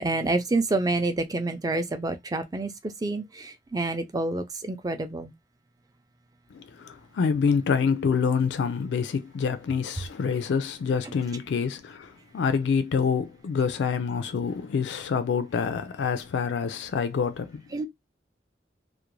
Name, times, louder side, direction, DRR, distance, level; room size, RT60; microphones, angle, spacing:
voice 1, 0.0-2.7 3.0-5.3 17.7-17.9, right 2 dB, 20° right, 0.4 m, -28 dB
voice 2, 6.5-17.6, left 6 dB, 90° left, 0.4 m, -27 dB
2.4 x 2.1 x 3.0 m
head